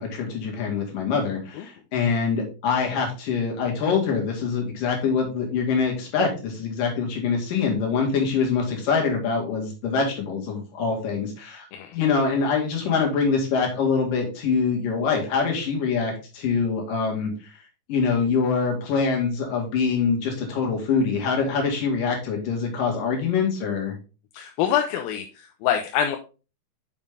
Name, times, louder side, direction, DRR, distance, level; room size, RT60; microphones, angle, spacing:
voice 1, 0.0-11.7 11.9-17.3 17.9-23.9, left 5 dB, 60° left, 0 dB, 3.3 m, -24 dB
voice 2, 24.3-26.2, left 9 dB, 80° left, 4 dB, 2.3 m, -25 dB
7.1 x 5.3 x 3.6 m, 0.32 s
omnidirectional pair, 4.5 m